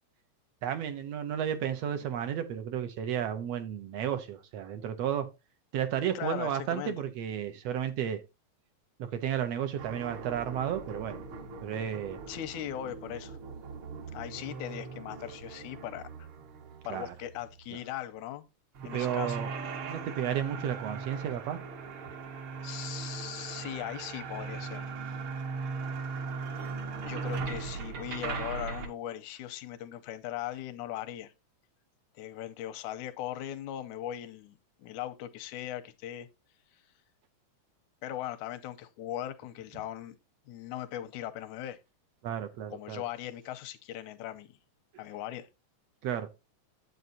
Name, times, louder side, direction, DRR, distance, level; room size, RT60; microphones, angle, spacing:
voice 1, 0.6-5.3 5.7-8.2 9.0-11.2 11.6-12.2 16.9-17.1 18.9-19.5 19.8-21.6 42.2-43.0 46.0-46.3, right 9 dB, 70° right, 1.8 m, -33 dB
voice 2, 6.1-7.0 12.3-13.4 14.1-16.3 16.8-18.5 18.8-19.4 22.6-24.9 27.0-31.3 32.2-36.3 38.0-40.2 40.5-41.8 42.7-44.5 45.0-45.5, left 12 dB, 85° left, 2.1 m, -39 dB
sound 1, 9.8-17.7 18.7-28.9, right 4 dB, 55° right, 1.7 m, -39 dB
9.4 x 7.9 x 2.7 m
omnidirectional pair, 3.4 m